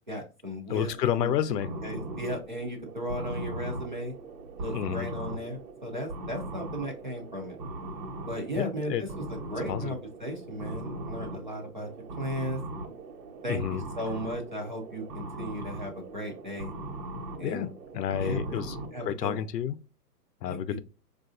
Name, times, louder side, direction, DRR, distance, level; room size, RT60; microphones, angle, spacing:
voice 1, 0.1-1.3 1.8-4.1 4.6-7.6 8.2-11.9 12.2-12.6 13.4-16.7 17.4-17.7 18.2-18.7 18.9-19.4 20.4-20.8, equal, 35° right, 0.4 m, -36 dB
voice 2, 0.7-1.7 4.7-5.1 8.5-9.0 9.6-10.0 13.5-13.8 17.4-18.8 19.0-19.8 20.4-20.8, left 10 dB, 80° left, 0.6 m, -30 dB
sound 1, 0.8-19.1, right 2 dB, 90° right, 1.1 m, -39 dB
4.6 x 2.4 x 2.5 m
hypercardioid pair, 165°, 48 cm